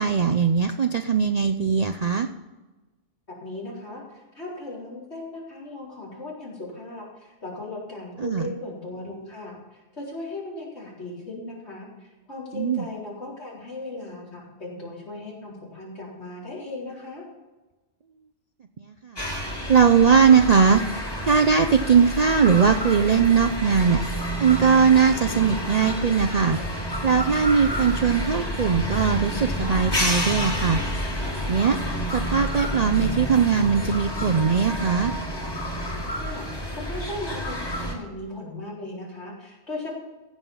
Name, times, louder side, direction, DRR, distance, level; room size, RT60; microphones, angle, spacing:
voice 1, 0.0-2.3 8.2-8.5 12.5-12.9 18.8-19.3 19.7-20.8 21.3-24.0 24.4-26.6 27.0-30.8 31.5-31.8 32.1-35.1, right 6 dB, 45° right, 6 dB, 0.5 m, -20 dB
voice 2, 3.4-17.2 36.2-36.6 36.9-39.9, left 2 dB, 65° left, -6 dB, 4.5 m, -37 dB
sound 1, 19.2-37.9, equal, 20° left, 2.0 m, -29 dB
15.5 x 5.6 x 7.1 m, 1.1 s
omnidirectional pair, 1.2 m